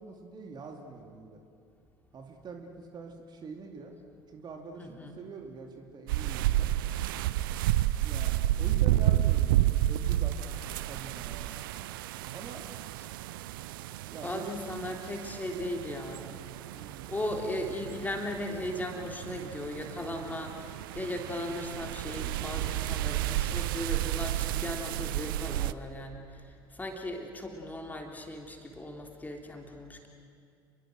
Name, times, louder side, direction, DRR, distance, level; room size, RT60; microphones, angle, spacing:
voice 1, 0.0-1.4 2.1-4.0 4.3-6.7 8.0-10.6 10.9-11.6 12.3-12.7 14.1-14.6 16.7-17.0, right 4 dB, 35° right, 3 dB, 2.7 m, -44 dB
voice 2, 4.8-5.1 14.2-16.3 17.1-26.2 26.7-30.1, left 1 dB, 15° left, 2 dB, 3.4 m, -37 dB
sound 1, 6.1-25.7, right 14 dB, 65° right, 0.6 m, -31 dB
29.0 x 22.5 x 6.4 m, 2.3 s
figure-of-eight pair, 65°, 12 cm